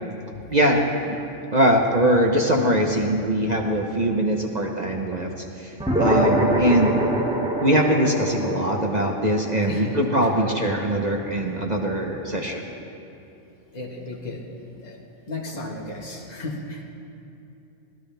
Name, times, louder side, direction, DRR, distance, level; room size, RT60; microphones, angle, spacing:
voice 1, 0.5-1.2 1.5-7.0 7.6-12.6, right 1 dB, 35° right, 1 dB, 1.2 m, -22 dB
sound 1, 5.8-10.6, right 1 dB, 5° right, 2.0 m, -25 dB
voice 2, 9.7-10.0 10.3-10.6 12.3-12.4 13.7-16.8, left 2 dB, 35° left, -2 dB, 1.8 m, -34 dB
25.0 x 16.5 x 3.5 m, 2.7 s
omnidirectional pair, 1.3 m